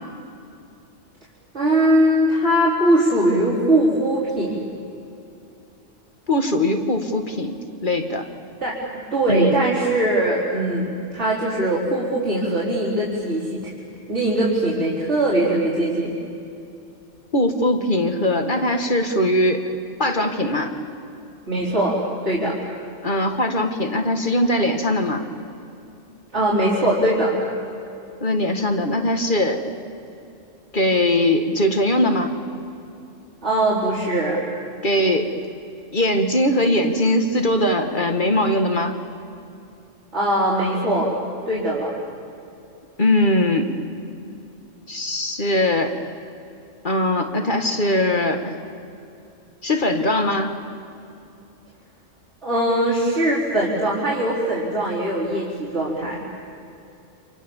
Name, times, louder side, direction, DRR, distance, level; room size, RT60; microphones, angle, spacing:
voice 1, 1.5-4.6 8.6-8.8 9.1-13.6 14.1-16.1 21.5-22.6 26.3-27.4 33.4-34.4 40.1-41.1 41.5-41.9 52.4-56.2, right 1 dB, 60° right, -7 dB, 5.2 m, -21 dB
voice 2, 6.3-8.3 9.3-9.6 17.3-19.7 20.0-20.7 23.0-25.2 28.2-29.6 30.7-32.3 34.8-35.3 35.9-39.0 43.0-43.8 44.9-46.0 46.8-48.5 49.6-50.6, left 1 dB, 40° left, 5 dB, 2.2 m, -21 dB
29.0 x 27.5 x 7.3 m, 2.7 s
omnidirectional pair, 1.3 m